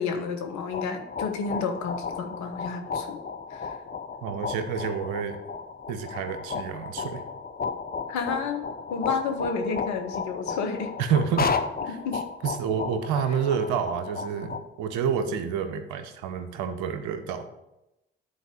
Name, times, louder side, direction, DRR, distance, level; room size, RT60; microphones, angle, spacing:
voice 1, 0.0-3.2 3.5-3.7 8.1-10.9 11.9-12.2, left 5 dB, 70° left, 5 dB, 1.1 m, -31 dB
sound 1, 0.5-14.6, left 5 dB, 30° left, 0.8 m, -34 dB
voice 2, 4.2-5.4 5.9-7.2 11.0-11.5 11.8-12.0 12.4-17.5, right 7 dB, 75° right, 9 dB, 0.8 m, -28 dB
10.5 x 4.1 x 5.1 m, 0.91 s
hypercardioid pair, 45°, 30 cm